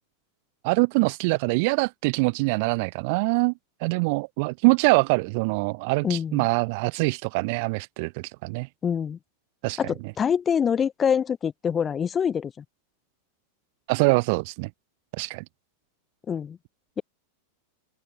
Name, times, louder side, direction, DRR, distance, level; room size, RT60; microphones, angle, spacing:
voice 1, 0.6-3.5 3.8-8.7 9.6-9.9 13.9-14.7 15.2-15.4, right 29 dB, 45° right, 2.6 m, -24 dB
voice 2, 6.0-6.5 8.8-9.2 9.8-12.6 16.3-16.6, left 7 dB, 20° left, 7.5 m, -25 dB
open air
figure-of-eight pair, 90°, 0 cm